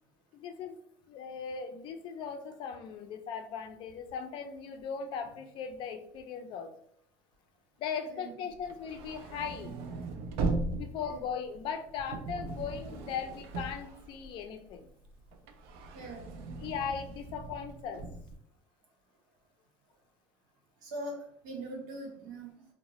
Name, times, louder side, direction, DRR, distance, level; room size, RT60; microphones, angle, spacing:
voice 1, 0.3-0.8 1.1-6.7 7.8-9.7 10.8-14.9 16.6-18.1, left 6 dB, 55° left, 7 dB, 0.4 m, -38 dB
voice 2, 8.0-8.4 11.0-11.2 15.9-16.3 20.8-21.2 21.4-22.5, right 1 dB, 90° right, 0 dB, 0.9 m, -41 dB
sound 1, 8.6-14.7 15.0-18.3, right 3 dB, 70° right, 0.4 m, -38 dB
2.8 x 2.1 x 3.0 m, 0.67 s
supercardioid pair, 120°, 10 cm